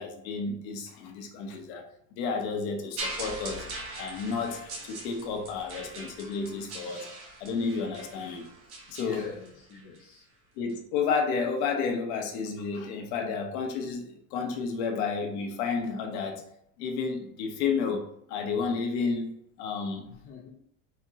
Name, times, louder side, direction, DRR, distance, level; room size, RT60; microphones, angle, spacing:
voice 1, 0.0-1.8 2.2-3.7 4.0-7.1 7.4-8.5 8.9-9.2 10.6-16.4 16.8-20.0, left 5 dB, 60° left, 4 dB, 1.0 m, -31 dB
sound 1, 3.0-10.0 10.7-10.8, right 2 dB, 35° right, 1.2 m, -41 dB
voice 2, 9.0-10.3 20.1-20.5, left 6 dB, 25° left, -3 dB, 0.6 m, -43 dB
4.4 x 2.9 x 3.6 m, 0.72 s
supercardioid pair, 155°, 38 cm